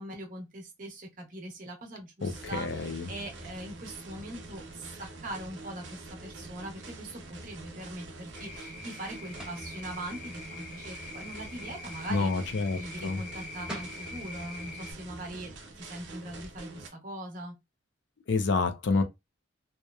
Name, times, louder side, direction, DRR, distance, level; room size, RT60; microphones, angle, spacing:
voice 1, 0.0-17.5, right 1 dB, 45° right, 0.8 m, -42 dB
voice 2, 2.2-3.1 12.1-13.2 18.3-19.0, left 4 dB, 70° left, 0.5 m, -28 dB
sound 1, 2.2-16.9, right 2 dB, 80° right, 0.7 m, -45 dB
sound 2, 8.3-14.9, left 3 dB, 45° left, 0.8 m, -45 dB
sound 3, 9.4-9.7 13.3-13.4 13.7-14.0, right 1 dB, 5° right, 0.6 m, -40 dB
2.9 x 2.0 x 2.3 m
head